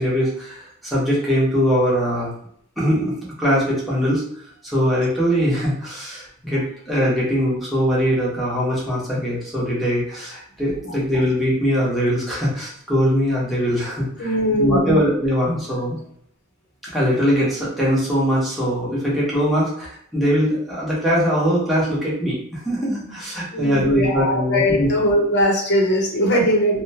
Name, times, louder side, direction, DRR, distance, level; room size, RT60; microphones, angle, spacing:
voice 1, 0.0-2.3 2.8-4.2 4.6-16.0 16.8-24.9 26.3-26.4, equal, ahead, -7 dB, 0.9 m, -21 dB
voice 2, 14.2-15.0 23.5-26.8, equal, 55° left, -1 dB, 0.8 m, -20 dB
2.7 x 2.1 x 2.7 m, 0.65 s
head